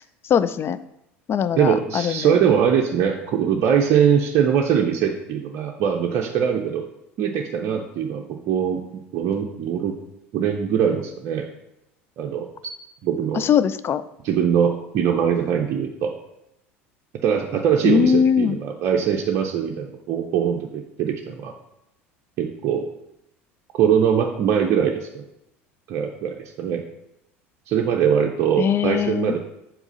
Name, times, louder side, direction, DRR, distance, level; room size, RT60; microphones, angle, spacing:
voice 1, 0.3-0.8 1.3-2.4 13.3-14.0 17.8-18.6 28.6-29.3, left 7 dB, 35° left, 13 dB, 0.4 m, -20 dB
voice 2, 1.6-6.9 7.2-8.8 9.1-10.0 10.3-11.5 12.2-12.5 13.0-13.4 14.2-16.1 17.2-21.5 22.4-22.9 23.7-25.2 25.9-26.8 27.7-29.4, right 8 dB, 50° right, 2 dB, 0.6 m, -22 dB
4.7 x 3.7 x 5.5 m, 0.84 s
hypercardioid pair, 75°, 7 cm